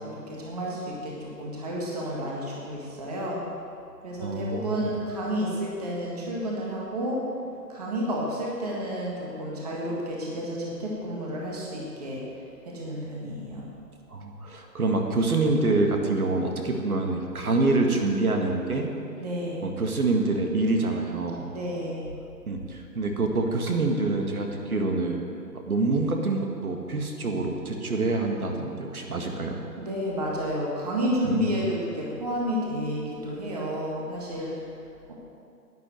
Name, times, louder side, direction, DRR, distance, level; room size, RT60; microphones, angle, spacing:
voice 1, 0.0-3.4 4.0-7.2 7.7-12.2 12.6-13.7 19.2-19.7 21.5-22.1 29.8-34.6 35.1-35.2, equal, 25° right, -4 dB, 1.7 m, -31 dB
voice 2, 4.2-4.9 14.1-18.9 19.6-21.5 22.5-25.2 25.5-29.6 31.3-31.7, right 3 dB, 60° right, 2 dB, 1.9 m, -26 dB
11.5 x 9.8 x 7.9 m, 2.5 s
hypercardioid pair, 175°, 49 cm